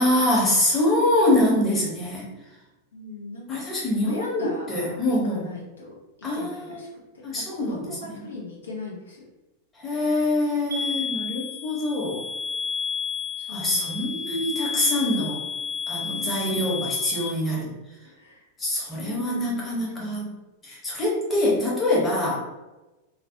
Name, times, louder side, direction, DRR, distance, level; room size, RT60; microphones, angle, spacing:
voice 1, 0.0-2.3 3.5-5.6 6.2-6.8 7.2-8.2 9.7-12.2 13.5-15.4 15.9-17.7 18.6-20.3 20.6-22.4, left 1 dB, 15° left, -5 dB, 0.9 m, -24 dB
voice 2, 2.9-3.7 4.0-5.0 5.3-6.9 7.3-9.2 13.4-14.5 16.1-16.4 18.1-18.4 18.9-20.2, left 2 dB, 70° left, -3 dB, 0.5 m, -39 dB
sound 1, 10.7-17.3, left 6 dB, 75° right, 0.4 m, -31 dB
2.4 x 2.1 x 2.7 m, 1.1 s
figure-of-eight pair, 90°, 0 cm